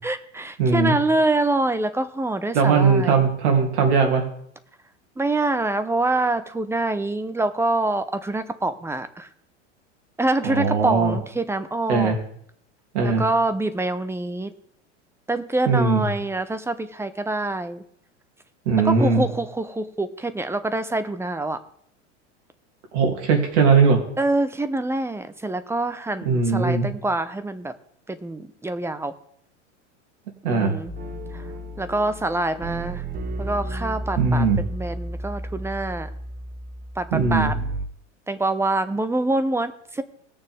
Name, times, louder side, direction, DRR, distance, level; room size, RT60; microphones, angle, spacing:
voice 1, 0.0-3.2 5.2-9.3 10.2-12.2 13.0-14.5 15.3-17.8 18.8-21.6 24.2-27.7 28.1-29.2 30.5-30.9 31.3-31.4 31.8-33.0 33.4-36.1 37.0-37.6 38.3-40.0, right 2 dB, 5° right, 11 dB, 0.8 m, -25 dB
voice 2, 0.6-1.0 2.5-4.3 10.4-11.2 11.9-12.2 12.9-13.2 15.7-16.1 18.6-19.3 22.9-24.0 26.2-26.9 30.4-30.7 34.2-34.6 37.1-37.5, right 4 dB, 70° right, 3 dB, 3.0 m, -19 dB
sound 1, 30.9-37.8, right 1 dB, 25° right, 1.1 m, -32 dB
19.0 x 7.0 x 3.6 m, 0.67 s
hypercardioid pair, 100°, 36 cm